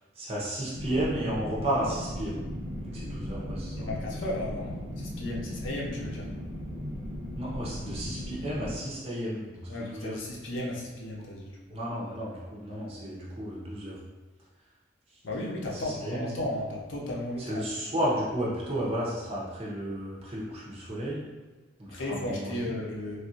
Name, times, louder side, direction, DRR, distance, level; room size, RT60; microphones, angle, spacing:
voice 1, 0.2-2.4 2.9-3.9 7.4-10.2 11.7-14.0 15.7-16.2 17.5-21.2 21.8-22.7, right 1 dB, 30° right, -6 dB, 0.8 m, -33 dB
sound 1, 0.7-8.7, equal, 5° right, 1.1 m, -37 dB
voice 2, 3.8-6.3 9.7-11.5 15.2-17.6 21.9-23.2, left 1 dB, 90° left, -3 dB, 0.7 m, -34 dB
3.2 x 2.5 x 2.7 m, 1.2 s
head